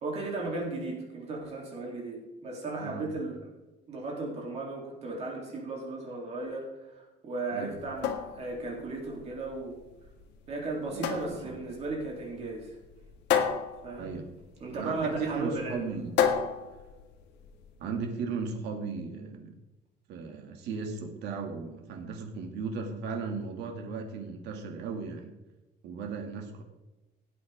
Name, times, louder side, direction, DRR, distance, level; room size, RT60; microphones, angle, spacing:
voice 1, 0.0-3.4 3.9-9.8 10.5-12.8 13.8-14.1 14.6-15.8, right 2 dB, 35° right, -2 dB, 3.5 m, -35 dB
sound 1, 7.7-17.7, left 8 dB, 75° left, 1.6 m, -33 dB
voice 2, 11.4-11.8 14.0-14.3 14.7-16.2 17.8-19.5 20.1-25.3 25.8-26.6, right 5 dB, 70° right, 3 dB, 2.6 m, -36 dB
17.0 x 8.5 x 3.8 m, 1.1 s
cardioid pair, 170°, 18 cm